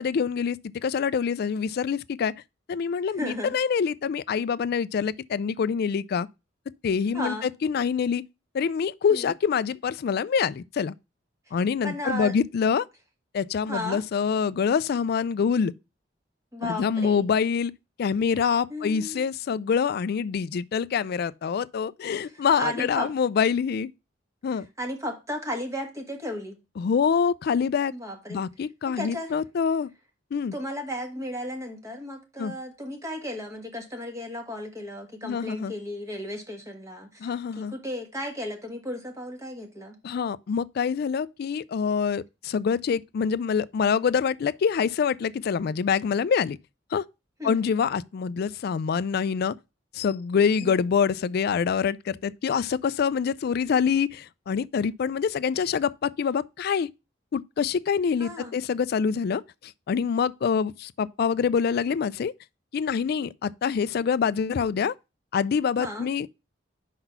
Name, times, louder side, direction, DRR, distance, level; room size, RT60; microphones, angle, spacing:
voice 1, 0.0-2.3 2.7-6.3 6.8-8.2 8.5-10.9 11.5-12.8 13.3-15.7 16.6-17.7 18.0-23.9 24.4-24.7 26.8-27.9 28.3-29.9 30.3-30.5 32.4-32.5 35.2-35.7 37.2-37.7 40.0-46.6 46.9-47.0 47.4-49.5 49.9-56.9 57.3-62.3 62.7-64.9 65.3-66.3, left 6 dB, 55° left, 0.3 m, -25 dB
voice 2, 3.2-3.6 7.1-7.5 9.1-9.3 11.5-11.6 11.8-12.3 13.7-14.0 16.5-17.3 18.7-19.3 22.2-23.1 24.8-26.6 27.9-28.4 29.0-29.3 30.5-37.3 37.6-40.0 47.4-47.7 50.6-50.8 58.2-58.6 65.8-66.1, equal, 15° right, 1.5 m, -34 dB
5.4 x 4.0 x 5.7 m
head